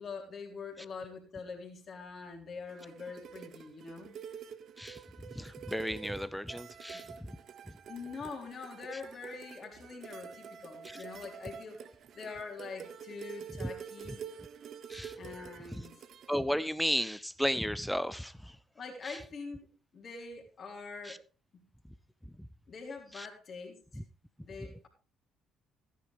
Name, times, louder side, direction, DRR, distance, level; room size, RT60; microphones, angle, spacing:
voice 1, 0.0-4.1 6.9-7.0 7.9-11.8 12.1-14.2 15.2-15.9 18.8-21.2 22.7-23.8 24.4-24.9, left 4 dB, 45° left, 3.7 m, -44 dB
sound 1, 2.7-16.4, right 7 dB, 55° right, 0.8 m, -48 dB
voice 2, 5.4-7.0 10.8-11.0 13.6-13.7 14.9-15.1 16.3-18.3 23.2-23.3, equal, 5° left, 0.7 m, -33 dB
14.0 x 10.0 x 3.4 m
hypercardioid pair, 50°, 0 cm